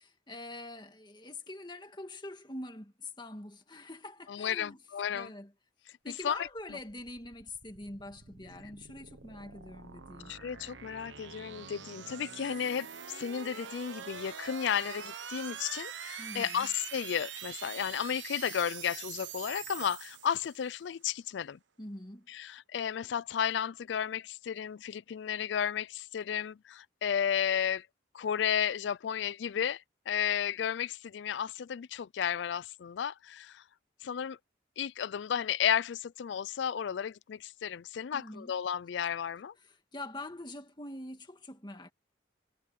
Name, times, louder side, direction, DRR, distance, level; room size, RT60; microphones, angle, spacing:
voice 1, 0.0-4.8 5.1-5.5 6.0-10.3 16.2-16.7 21.8-22.3 38.1-38.5 39.6-41.9, left 2 dB, 25° left, 2.0 m, -44 dB
voice 2, 4.3-5.3 6.2-6.4 10.3-21.6 22.3-27.9 28.1-33.6 34.0-34.4 34.8-39.5, left 8 dB, 75° left, 0.4 m, -33 dB
sound 1, 6.2-20.8, right 8 dB, 80° right, 1.2 m, -45 dB
head